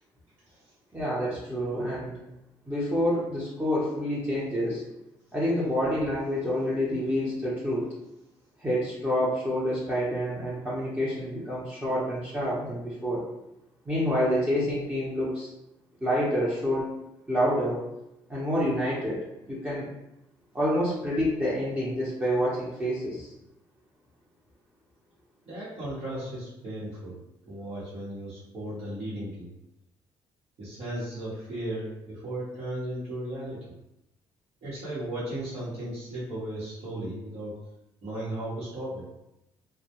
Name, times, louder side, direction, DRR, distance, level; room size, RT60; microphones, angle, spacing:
voice 1, 0.9-2.1 2.7-4.8 5.3-7.9 8.6-13.2 13.9-15.5 16.0-16.9 17.3-17.8 18.3-19.9 20.5-23.3, equal, 15° right, -8 dB, 0.7 m, -28 dB
voice 2, 25.5-27.2 27.5-29.5 30.6-33.6 34.6-37.5 38.0-39.1, right 1 dB, 65° right, -11 dB, 1.0 m, -35 dB
2.2 x 2.1 x 2.9 m, 0.89 s
supercardioid pair, 70°, 11 cm